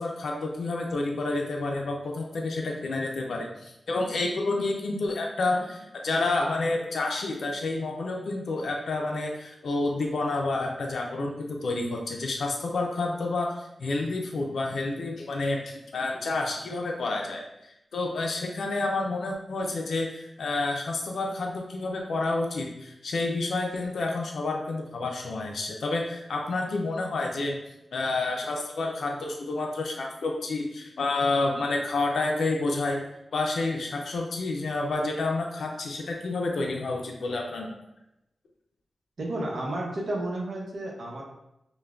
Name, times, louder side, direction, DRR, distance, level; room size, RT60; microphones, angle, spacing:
voice 1, 0.0-17.4 17.9-27.6 27.9-33.1 33.3-37.8, left 2 dB, 85° left, 1 dB, 0.5 m, -29 dB
voice 2, 39.2-41.2, right 1 dB, 70° right, -3 dB, 0.9 m, -32 dB
5.5 x 2.2 x 2.4 m, 0.85 s
wide cardioid pair, 115°, 0 cm